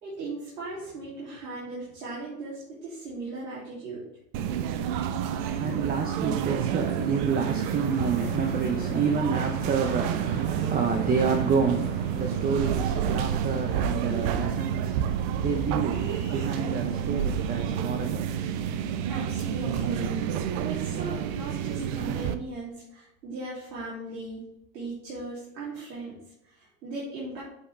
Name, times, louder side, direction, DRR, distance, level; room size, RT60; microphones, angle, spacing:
voice 1, 0.0-4.0 18.7-20.1 20.6-24.4 24.7-27.4, right 2 dB, 80° right, 3.0 m, -38 dB
sound 1, 4.3-22.4, right 8 dB, 50° right, 0.8 m, -29 dB
voice 2, 4.8-18.5, right 5 dB, 20° right, 0.8 m, -29 dB
7.9 x 5.7 x 3.3 m
hypercardioid pair, 105°, 50 cm